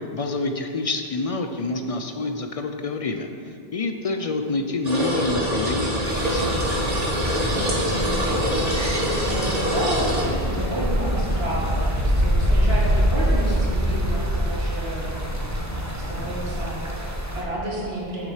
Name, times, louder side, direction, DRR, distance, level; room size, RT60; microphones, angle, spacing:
voice 1, 0.0-6.6, left 3 dB, 50° left, 6 dB, 0.4 m, -27 dB
sound 1, 4.8-10.2, equal, 40° right, 1.4 m, -25 dB
Thunder, 5.3-16.5, equal, 90° right, 2.3 m, -33 dB
sound 2, 6.0-17.4, equal, 15° right, 0.8 m, -25 dB
voice 2, 7.7-15.2 15.7-18.3, right 1 dB, 65° right, -5 dB, 1.9 m, -31 dB
7.5 x 7.2 x 4.9 m, 2.4 s
omnidirectional pair, 1.1 m